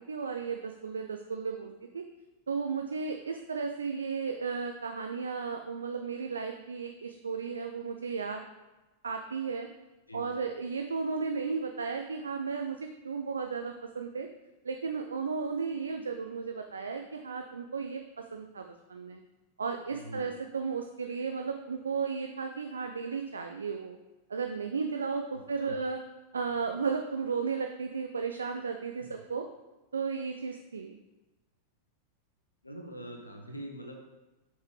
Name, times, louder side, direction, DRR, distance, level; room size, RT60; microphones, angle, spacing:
voice 1, 0.0-2.0 2.5-8.4 9.0-9.7 10.1-14.3 14.6-18.0 18.3-19.2 19.6-24.0 24.3-26.0 26.3-29.5 29.9-31.0, right 5 dB, 70° right, 4 dB, 0.3 m, -34 dB
voice 2, 19.9-20.3 25.6-25.7 29.0-29.1 32.6-34.0, right 1 dB, 85° left, 3 dB, 0.6 m, -43 dB
6.2 x 4.6 x 3.3 m, 1.1 s
figure-of-eight pair, 90°, 0 cm